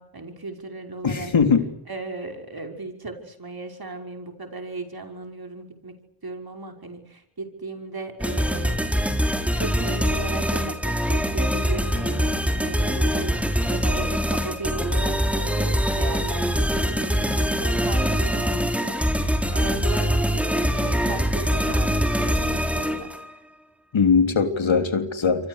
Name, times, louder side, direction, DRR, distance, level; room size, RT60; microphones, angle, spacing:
voice 1, 0.0-1.3 1.9-5.9 6.2-8.8 9.5-13.3 13.7-23.4, right 3 dB, 50° right, 4 dB, 5.9 m, -36 dB
voice 2, 1.0-1.7 23.9-25.5, left 5 dB, 75° left, 7 dB, 3.6 m, -20 dB
sound 1, 8.2-23.3, equal, 5° right, 4.0 m, -23 dB
28.0 x 24.5 x 6.6 m, 0.82 s
cardioid pair, 45°, 47 cm